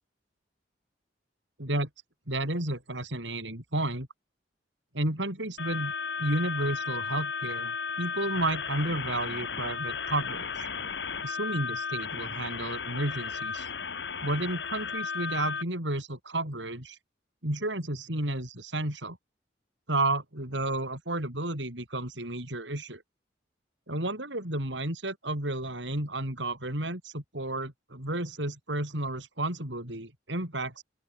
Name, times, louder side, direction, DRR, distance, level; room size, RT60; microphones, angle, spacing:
voice 1, 2.3-4.1 4.9-5.9 6.2-7.7 8.0-10.7 11.2-13.7 14.2-17.0 17.4-19.2 19.9-23.0 23.9-30.8, right 1 dB, 80° right, 7.8 m, -32 dB
sound 1, 5.6-15.6, left 5 dB, 70° left, 2.0 m, -34 dB
open air
head